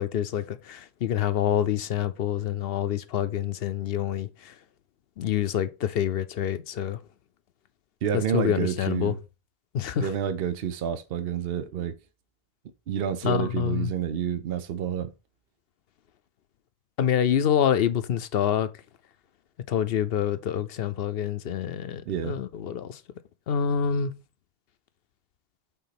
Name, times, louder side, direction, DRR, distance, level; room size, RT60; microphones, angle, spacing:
voice 1, 0.0-4.5 5.2-7.0 8.1-9.1 9.7-10.1 13.2-13.9 17.0-18.7 19.7-23.0 23.5-24.1, left 9 dB, 70° left, 0.8 m, -27 dB
voice 2, 8.0-9.2 10.0-12.0 12.9-15.1 22.1-22.4, right 8 dB, 70° right, 0.9 m, -29 dB
5.7 x 3.9 x 5.8 m
omnidirectional pair, 1.1 m